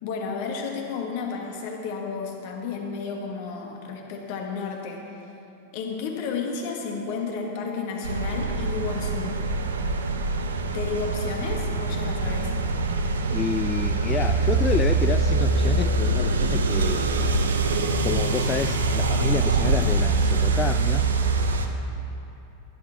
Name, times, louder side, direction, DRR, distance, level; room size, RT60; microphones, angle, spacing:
voice 1, 0.0-5.3 5.7-9.4 10.7-12.5, left 5 dB, 50° left, 1 dB, 1.9 m, -32 dB
sound 1, 8.0-21.7, right 3 dB, 70° right, 0.9 m, -24 dB
voice 2, 13.3-17.1 18.0-21.1, left 7 dB, 20° left, 10 dB, 0.3 m, -29 dB
16.5 x 11.0 x 4.1 m, 3.0 s
figure-of-eight pair, 90°, 0 cm